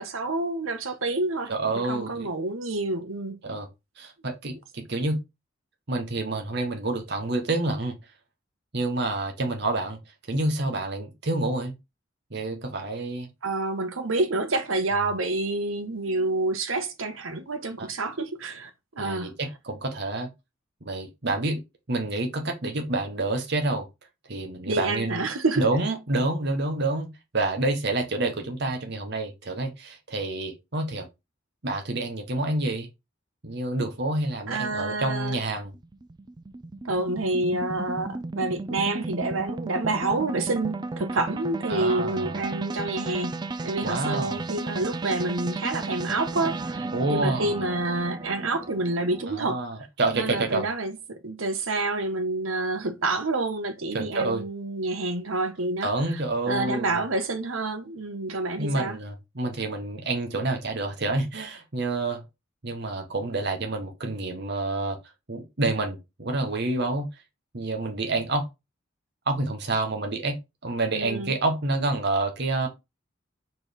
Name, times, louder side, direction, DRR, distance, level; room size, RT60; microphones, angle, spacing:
voice 1, 0.0-3.4 13.4-18.7 19.0-19.3 24.7-25.6 34.5-35.4 36.8-43.3 43.6-49.6 50.1-55.9 56.5-59.0 70.9-71.3, right 2 dB, 90° right, 1.1 m, -28 dB
voice 2, 1.5-2.3 3.4-3.7 4.0-5.2 5.9-8.0 8.7-10.0 10.3-11.7 12.3-13.3 17.8-17.9 19.0-20.3 20.8-21.6 21.9-23.8 24.3-25.2 25.6-31.1 31.6-32.9 33.4-35.7 41.7-42.6 43.8-44.4 46.9-47.5 49.3-50.7 53.9-54.4 55.8-57.0 58.6-62.2 62.6-65.0 65.3-67.1 67.5-68.5 69.3-70.4 70.6-72.7, right 2 dB, 55° right, 1.3 m, -28 dB
sound 1, 35.6-49.2, right 3 dB, 20° right, 0.3 m, -34 dB
4.5 x 4.2 x 5.2 m
head